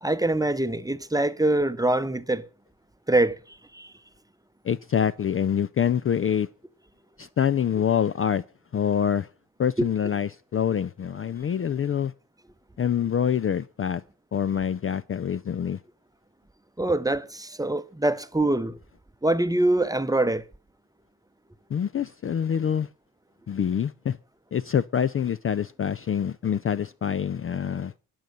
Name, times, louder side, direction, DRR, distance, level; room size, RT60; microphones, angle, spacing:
voice 1, 0.0-2.5 3.1-3.9 9.8-9.9 16.8-18.8 19.2-20.4, right 1 dB, 10° right, 0.8 m, -24 dB
voice 2, 4.6-6.5 7.2-8.4 8.7-9.3 9.6-12.1 12.8-14.0 14.3-15.8 21.7-22.9 23.5-24.2 24.5-27.9, left 8 dB, 35° left, 0.4 m, -25 dB
9.2 x 9.0 x 6.7 m
supercardioid pair, 55°, 40 cm